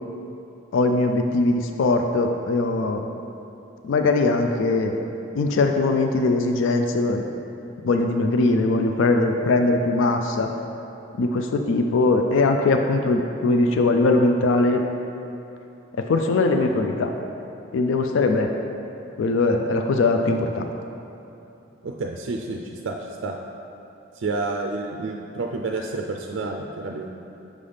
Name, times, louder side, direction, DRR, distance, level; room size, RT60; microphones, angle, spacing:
voice 1, 0.7-3.1 3.8-5.0 5.3-7.2 7.8-10.5 11.2-14.8 16.0-17.1 17.7-18.5 19.2-20.7, left 3 dB, 75° left, 5 dB, 0.4 m, -21 dB
voice 2, 21.8-23.0 23.2-23.3 24.2-27.1, right 3 dB, 70° right, 1 dB, 0.4 m, -29 dB
6.2 x 3.4 x 5.5 m, 2.8 s
head